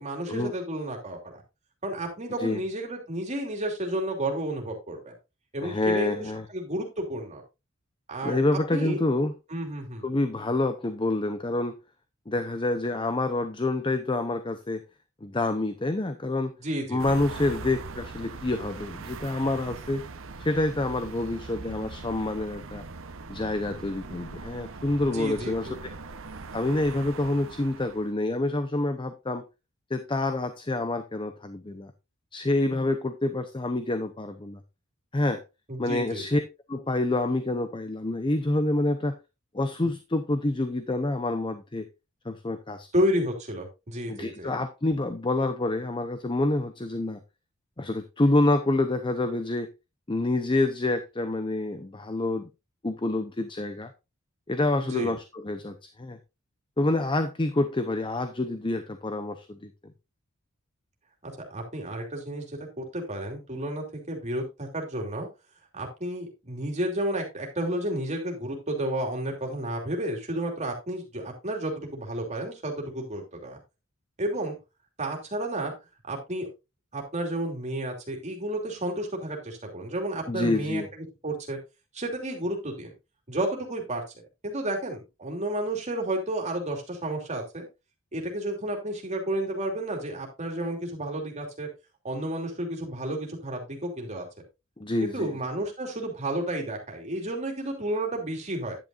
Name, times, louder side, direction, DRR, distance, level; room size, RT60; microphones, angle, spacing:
voice 1, 0.0-1.4 1.8-5.1 5.5-7.4 8.1-8.4 8.7-9.0 9.5-10.0 16.6-17.2 25.1-25.8 35.7-36.4 42.9-44.5 54.8-55.1 61.2-65.3 65.7-73.6 74.2-74.5 75.0-75.7 76.1-76.5 76.9-81.6 81.9-82.9 83.3-84.0 84.4-87.7 88.1-91.7 92.0-94.3 95.0-98.8, right 1 dB, 35° right, 3.0 m, -31 dB
voice 2, 5.6-6.4 8.2-9.3 10.0-11.7 12.3-14.8 15.2-16.5 16.9-20.1 20.4-22.8 23.3-25.7 26.5-29.4 29.9-31.9 32.3-34.6 35.1-35.4 35.8-36.4 36.7-39.2 39.5-41.9 42.2-42.9 44.1-47.2 47.8-49.7 50.1-52.5 52.8-53.9 54.5-56.2 56.8-59.7 80.3-80.9 94.8-95.4, left 2 dB, 25° left, 0.7 m, -27 dB
sound 1, 17.0-28.1, right 3 dB, 65° right, 0.9 m, -41 dB
10.5 x 9.2 x 2.5 m
head